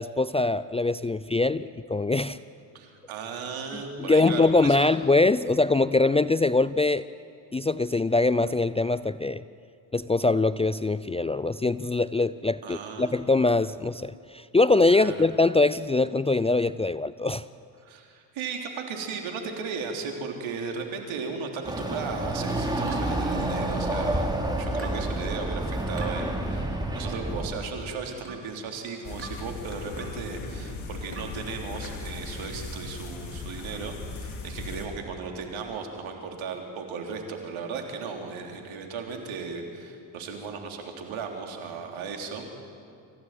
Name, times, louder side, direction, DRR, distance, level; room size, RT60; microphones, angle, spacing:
voice 1, 0.0-2.4 4.1-7.0 7.5-9.4 9.9-17.4, left 3 dB, 15° left, 15 dB, 0.5 m, -23 dB
voice 2, 2.7-4.9 12.6-13.2 14.9-15.2 17.8-24.3 24.6-42.6, right 5 dB, 70° right, 3 dB, 3.7 m, -36 dB
Chatter / Car passing by / Motorcycle, 21.6-27.5, right 1 dB, 10° right, 4.8 m, -29 dB
sound 1, 22.9-24.0 24.8-25.1 26.0-26.2 27.1-27.4 28.2-28.5 29.2-29.5 30.0-30.2 31.1-31.4, right 2 dB, 25° right, 4.2 m, -42 dB
sound 2, 29.0-34.9, left 3 dB, 70° left, 3.9 m, -38 dB
25.5 x 16.0 x 9.2 m, 2.4 s
supercardioid pair, 60°, 49 cm